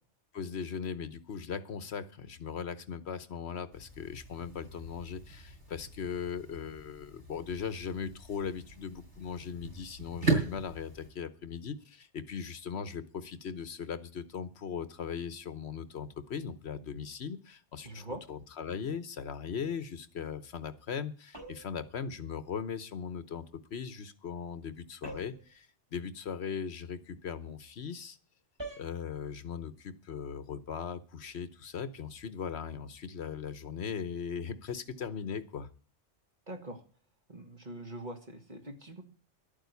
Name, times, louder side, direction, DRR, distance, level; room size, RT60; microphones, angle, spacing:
voice 1, 0.3-28.2 28.8-35.7, left 6 dB, 65° left, 14 dB, 1.1 m, -39 dB
sound 1, 3.7-11.1, right 3 dB, 70° right, 6.7 m, -38 dB
voice 2, 17.8-18.2 36.5-36.8 37.3-39.0, right 1 dB, 40° right, 5 dB, 2.0 m, -43 dB
sound 2, 21.3-21.8 25.0-25.5 28.6-28.9, right 2 dB, 20° right, 3.8 m, -44 dB
12.0 x 8.9 x 8.2 m, 0.38 s
omnidirectional pair, 1.2 m